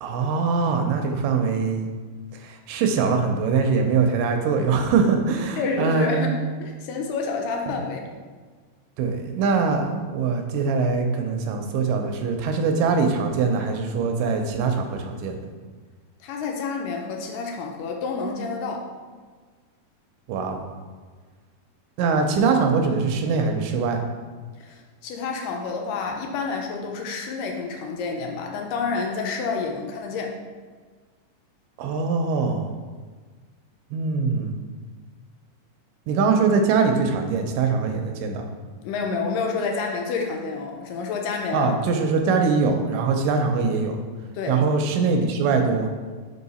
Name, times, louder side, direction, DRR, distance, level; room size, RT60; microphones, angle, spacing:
voice 1, 0.0-1.9 2.3-6.3 7.7-7.9 9.0-15.4 20.3-20.6 22.0-24.0 31.8-32.7 33.9-34.6 36.1-38.5 41.5-44.0 44.5-45.9, right 4 dB, 80° right, 4 dB, 2.1 m, -22 dB
voice 2, 5.6-8.0 16.2-18.9 24.6-30.4 38.8-41.7 44.3-44.6, left 4 dB, 80° left, 2 dB, 2.1 m, -29 dB
5.1 x 4.6 x 4.1 m, 1.5 s
omnidirectional pair, 4.0 m